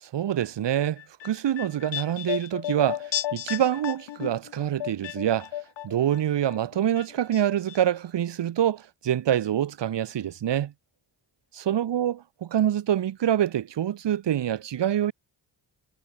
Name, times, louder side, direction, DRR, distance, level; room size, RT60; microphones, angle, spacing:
voice 1, 0.0-5.5 5.8-10.7 11.7-15.1, right 10 dB, 75° right, 5.1 m, -26 dB
sound 1, 1.0-6.2 6.5-7.4 7.7-7.8, left 13 dB, 85° left, 3.1 m, -34 dB
cardioid pair, 70°, 43 cm